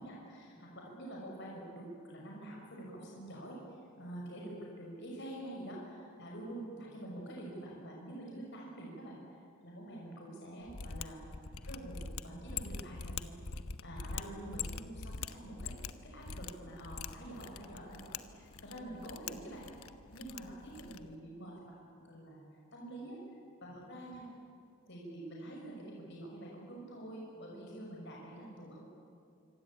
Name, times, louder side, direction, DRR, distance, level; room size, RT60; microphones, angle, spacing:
voice 1, 0.0-9.2 9.6-11.2 11.6-13.3 13.8-15.8 16.0-19.7 20.1-22.4 22.7-23.2 23.6-24.3 24.9-28.8, right 1 dB, 55° left, -2 dB, 6.1 m, -47 dB
Mechanisms, 10.7-21.1, left 5 dB, 80° left, 1.1 m, -44 dB
26.0 x 25.0 x 8.7 m, 2.4 s
head